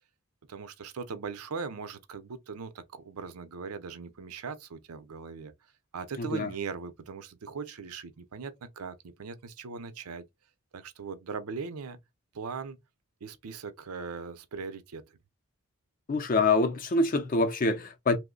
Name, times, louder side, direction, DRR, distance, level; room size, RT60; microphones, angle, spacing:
voice 1, 0.5-5.5 5.9-10.2 10.7-12.0 12.3-12.8 13.2-15.0, right 5 dB, 90° right, 0.6 m, -39 dB
voice 2, 6.2-6.5 16.1-18.2, left 3 dB, 40° left, 0.5 m, -25 dB
3.0 x 2.1 x 3.7 m
head